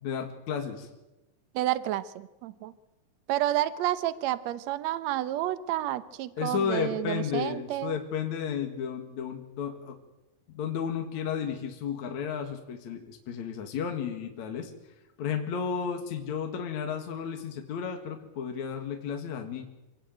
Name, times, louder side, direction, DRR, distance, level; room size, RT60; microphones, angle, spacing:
voice 1, 0.0-0.9 6.4-10.0 10.5-14.7 15.2-19.7, left 7 dB, 60° left, 4 dB, 3.0 m, -33 dB
voice 2, 1.5-2.7 3.3-7.9, right 13 dB, 70° right, 14 dB, 1.8 m, -30 dB
26.5 x 18.0 x 9.1 m, 1.0 s
omnidirectional pair, 4.0 m